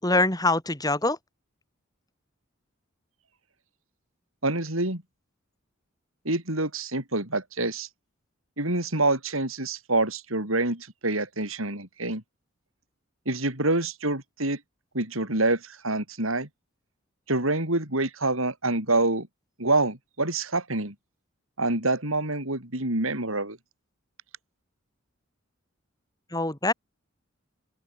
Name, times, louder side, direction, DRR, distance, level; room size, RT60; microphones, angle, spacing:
voice 1, 0.0-1.2 26.3-26.7, left 2 dB, 20° left, 5.9 m, -24 dB
voice 2, 4.4-5.0 6.3-7.9 8.6-12.2 13.3-14.6 14.9-16.5 17.3-19.3 19.6-20.9 21.6-23.6, right 2 dB, 80° right, 7.3 m, -26 dB
open air
head